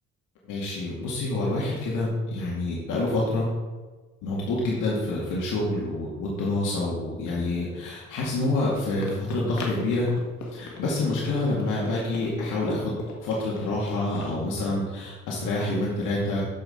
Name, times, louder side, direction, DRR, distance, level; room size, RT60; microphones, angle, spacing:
voice 1, 0.4-3.5 4.2-10.1 10.5-16.4, left 2 dB, 85° left, -5 dB, 2.2 m, -27 dB
Run, 8.2-14.4, left 3 dB, 65° left, 2.0 m, -41 dB
13.5 x 5.5 x 4.4 m, 1.3 s
cardioid pair, 90°, 30 cm